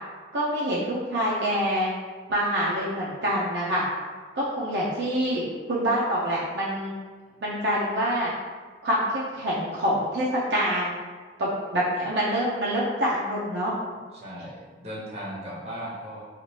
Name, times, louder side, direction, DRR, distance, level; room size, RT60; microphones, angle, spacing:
voice 1, 0.3-1.9 2.3-3.8 4.3-6.9 7.4-8.3 8.8-11.0 11.4-13.7, equal, 70° right, -7 dB, 0.5 m, -26 dB
voice 2, 14.1-16.2, equal, 40° right, -7 dB, 0.9 m, -37 dB
3.0 x 2.4 x 2.8 m, 1.5 s
head